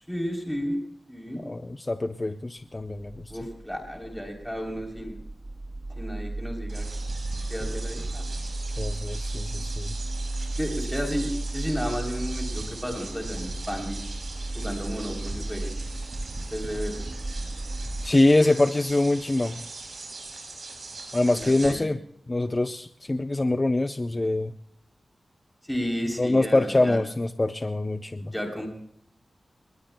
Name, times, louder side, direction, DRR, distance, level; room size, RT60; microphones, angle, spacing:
voice 1, 0.1-0.8 1.1-1.4 3.3-5.2 5.9-6.9 7.5-8.2 10.6-14.0 14.5-15.7 16.5-17.0 21.3-22.0 25.6-27.0 28.3-28.7, equal, 5° left, 1 dB, 3.3 m, -32 dB
voice 2, 1.5-3.3 8.8-9.9 18.0-19.6 21.1-22.0 22.3-24.5 26.2-28.3, left 2 dB, 25° left, 9 dB, 0.6 m, -24 dB
sound 1, 2.9-18.2, right 2 dB, 25° right, 0.6 m, -34 dB
sound 2, 6.7-21.7, right 3 dB, 55° right, 6.1 m, -40 dB
30.0 x 20.0 x 2.2 m, 0.68 s
wide cardioid pair, 120°, 0 cm